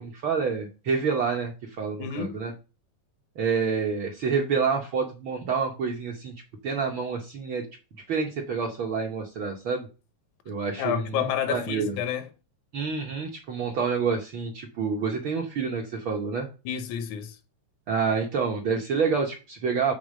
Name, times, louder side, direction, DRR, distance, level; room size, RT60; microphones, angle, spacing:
voice 1, 0.0-2.5 3.4-6.3 6.6-7.6 8.1-9.9 10.5-12.0 12.7-16.5 17.9-19.9, right 5 dB, 65° right, 1.3 m, -28 dB
voice 2, 2.0-2.4 10.8-12.3 16.7-17.4, left 8 dB, 80° left, 2.2 m, -29 dB
6.6 x 4.0 x 6.3 m
omnidirectional pair, 3.3 m